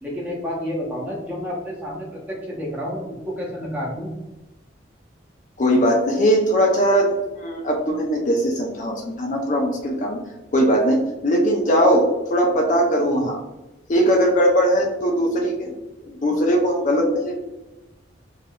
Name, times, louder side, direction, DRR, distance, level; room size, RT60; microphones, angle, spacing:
voice 1, 0.0-4.2 13.1-13.2, equal, 10° right, -4 dB, 0.7 m, -30 dB
voice 2, 5.6-10.2 10.5-13.4 13.9-15.7 16.0-17.3, equal, 40° left, 1 dB, 0.4 m, -20 dB
3.4 x 2.5 x 2.2 m, 1.0 s
head